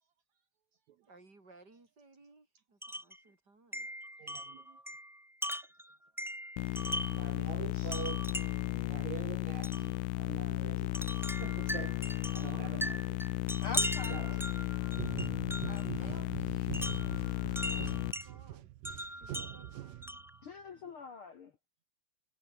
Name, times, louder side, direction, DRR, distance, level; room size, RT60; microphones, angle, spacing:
voice 1, 1.1-3.9 15.8-18.7 19.2-20.0, right 3 dB, 30° right, 5.1 m, -59 dB
Wind chime, 2.8-3.2 3.7-7.3 7.9-8.7 9.6-9.9 10.9-15.9 16.7-18.3 18.8-20.4, equal, ahead, 1.5 m, -39 dB
voice 2, 4.2-4.8 7.1-8.3 8.7-10.9 11.4-13.2 14.0-14.4 15.1-15.3, right 11 dB, 65° right, 2.3 m, -46 dB
sound 1, 6.6-18.1, left 22 dB, 80° left, 2.0 m, -35 dB
voice 3, 13.6-14.4 14.7-15.0 15.6-16.1 20.4-21.5, left 4 dB, 50° left, 1.9 m, -45 dB
sound 2, 14.9-20.5, right 15 dB, 85° right, 2.7 m, -44 dB
omnidirectional pair, 3.7 m